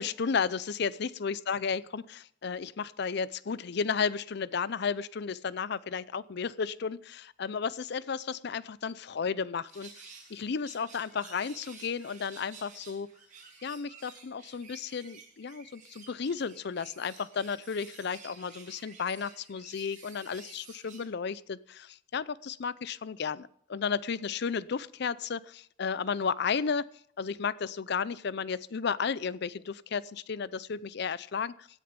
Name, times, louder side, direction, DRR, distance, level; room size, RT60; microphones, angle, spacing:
voice 1, 0.0-13.1 13.6-26.9 27.2-31.7, left 6 dB, 60° left, 19 dB, 0.5 m, -33 dB
sound 1, 9.7-21.1, right 5 dB, 40° right, 7.2 m, -52 dB
16.5 x 10.0 x 5.2 m, 0.63 s
head